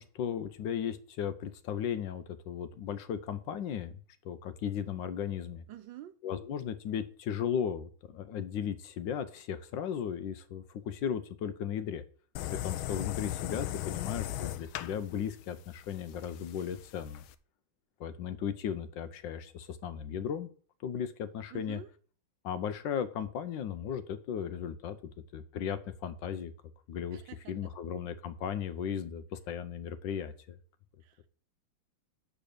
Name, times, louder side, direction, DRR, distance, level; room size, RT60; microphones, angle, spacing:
voice 1, 0.0-4.0 4.2-5.6 6.2-12.0 12.5-17.2 18.0-20.5 20.8-21.8 22.4-25.0 25.3-26.5 26.9-27.2 27.5-30.6, left 8 dB, 70° left, 12 dB, 1.3 m, -36 dB
voice 2, 5.7-6.1 21.5-21.9 27.1-27.7 31.0-31.3, right 13 dB, 70° right, 11 dB, 1.3 m, -48 dB
sound 1, 12.4-17.3, left 13 dB, 90° left, 1.4 m, -38 dB
7.2 x 5.2 x 6.5 m, 0.42 s
omnidirectional pair, 2.2 m